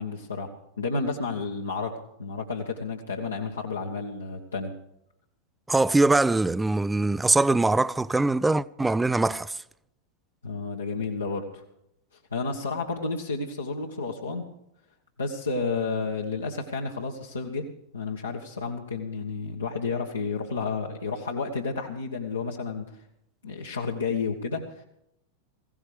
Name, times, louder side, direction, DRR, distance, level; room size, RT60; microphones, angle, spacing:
voice 1, 0.0-4.7 10.4-11.6 12.3-14.5 15.2-17.7 17.9-22.8 23.4-24.8, left 4 dB, 75° left, 1.5 m, -31 dB
voice 2, 5.7-9.6, right 2 dB, 10° right, 0.4 m, -22 dB
19.5 x 16.5 x 3.4 m
figure-of-eight pair, 90°, 0 cm